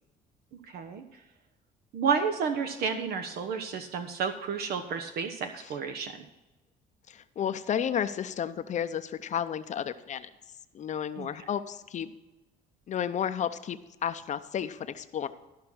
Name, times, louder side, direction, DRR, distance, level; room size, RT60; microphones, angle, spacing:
voice 1, 0.7-1.0 1.9-6.1 11.2-11.3, right 6 dB, 70° right, 7 dB, 1.0 m, -31 dB
voice 2, 7.1-10.3 10.7-12.1 12.9-15.3, left 8 dB, 45° left, 11 dB, 0.7 m, -32 dB
13.5 x 5.7 x 6.1 m, 1.1 s
cardioid pair, 110°, 17 cm